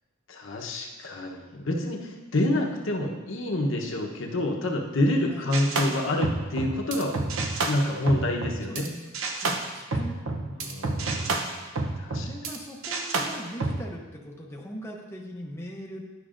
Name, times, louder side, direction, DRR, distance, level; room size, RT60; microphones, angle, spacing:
voice 1, 0.3-7.1 7.7-8.9 10.6-11.7 12.0-12.3, left 1 dB, 70° left, 1 dB, 0.9 m, -28 dB
sound 1, 5.5-8.9 9.1-12.6 12.8-13.8, right 3 dB, 75° right, 0.7 m, -30 dB
voice 2, 8.7-10.8 12.2-16.0, equal, 15° left, -1 dB, 0.6 m, -40 dB
10.5 x 6.1 x 2.5 m, 1.2 s
head